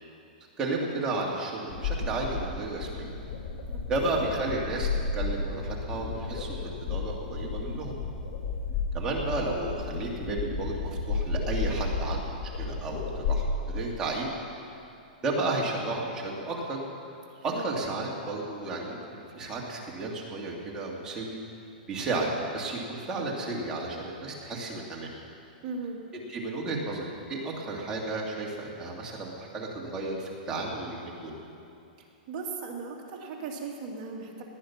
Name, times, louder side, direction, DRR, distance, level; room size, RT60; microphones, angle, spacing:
voice 1, 0.6-3.1 3.9-8.0 8.9-12.2 12.5-14.3 15.2-16.8 17.4-21.4 21.9-25.1 26.3-31.3, right 2 dB, 15° right, -3 dB, 2.1 m, -33 dB
sound 1, 1.7-13.4, left 4 dB, 50° left, 2.7 m, -33 dB
voice 2, 4.0-4.3 17.3-17.6 25.6-26.0 32.3-34.4, right 4 dB, 35° right, -1 dB, 2.3 m, -37 dB
18.5 x 10.0 x 5.8 m, 2.7 s
hypercardioid pair, 160°, 5 cm